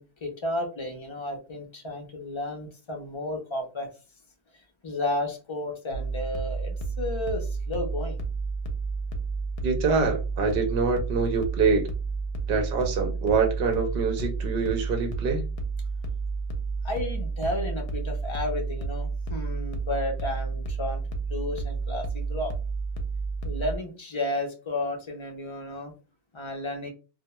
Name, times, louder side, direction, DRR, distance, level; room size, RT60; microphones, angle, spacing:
voice 1, 0.0-3.9 4.8-8.2 16.8-21.0 21.3-22.5 23.4-25.9 26.3-26.9, left 2 dB, 40° left, 2 dB, 0.4 m, -32 dB
sound 1, 5.9-23.8, right 4 dB, 70° left, 0.8 m, -31 dB
voice 2, 9.6-11.9 12.5-15.4, right 4 dB, 65° right, 4 dB, 0.7 m, -25 dB
2.2 x 2.1 x 2.8 m, 0.32 s
omnidirectional pair, 1.1 m